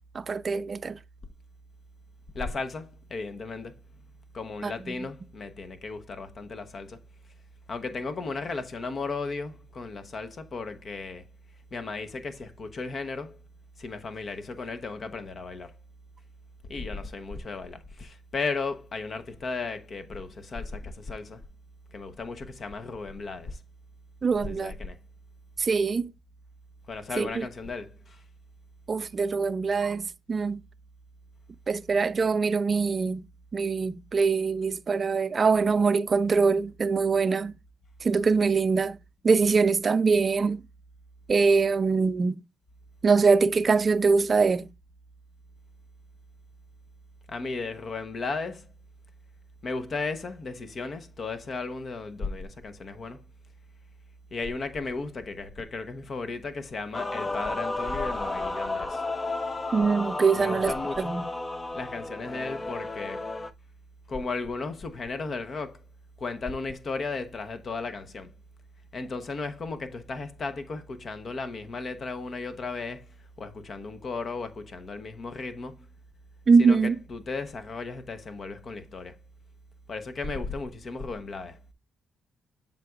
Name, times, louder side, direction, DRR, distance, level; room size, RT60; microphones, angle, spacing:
voice 1, 0.1-1.0 4.6-4.9 24.2-24.7 25.6-26.1 27.2-27.4 28.9-30.6 31.7-33.2 33.5-37.5 38.0-39.0 39.2-40.6 41.3-42.4 43.0-44.7 59.7-61.2 76.5-77.0, right 4 dB, 40° right, 0.5 m, -23 dB
voice 2, 2.3-3.8 4.3-7.0 7.7-11.3 11.7-13.4 13.8-15.7 16.7-21.4 21.9-23.6 24.3-25.0 26.9-28.2 47.3-48.7 49.6-53.2 54.3-59.0 60.3-61.1 61.7-63.3 64.1-65.8 66.2-68.3 68.9-75.8 76.6-79.2 79.9-81.6, left 3 dB, 45° left, 1.0 m, -35 dB
Male singing / Female singing / Musical instrument, 56.9-63.5, left 2 dB, 20° left, 0.7 m, -32 dB
7.4 x 5.3 x 2.4 m
cardioid pair, 90°, 0 cm